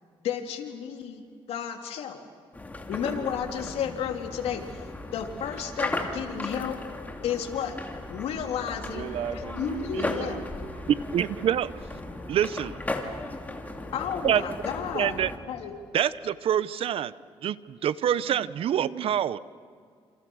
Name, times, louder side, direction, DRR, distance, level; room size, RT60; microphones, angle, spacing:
voice 1, 0.2-2.2 2.9-4.8 5.1-6.8 7.2-7.8 8.1-10.4 13.9-15.2 15.5-15.7, left 8 dB, 80° left, 3 dB, 3.2 m, -32 dB
sound 1, 2.5-15.4, left 2 dB, 15° left, 2.7 m, -36 dB
voice 2, 8.8-10.9 11.2-11.4, right 8 dB, 90° right, 8 dB, 1.9 m, -36 dB
voice 3, 10.9-11.7 12.3-12.8 14.2-14.4 14.9-15.3 15.9-17.1 17.4-19.4, right 10 dB, 65° right, 17 dB, 0.8 m, -26 dB
29.0 x 28.5 x 6.4 m, 2.2 s
cardioid pair, 105°, 10 cm